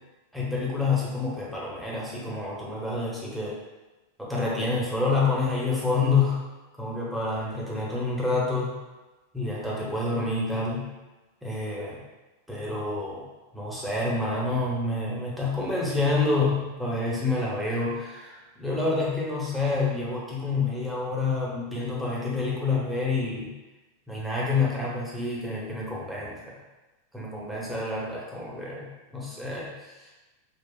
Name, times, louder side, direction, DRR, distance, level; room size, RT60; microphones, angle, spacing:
voice 1, 0.3-3.6 4.2-6.4 6.8-8.8 9.3-10.9 11.4-12.0 12.5-13.3 13.5-23.5 24.1-26.5 27.1-30.1, left 3 dB, 5° right, -6 dB, 0.9 m, -28 dB
3.8 x 2.3 x 2.4 m, 1.1 s
figure-of-eight pair, 90°, 0 cm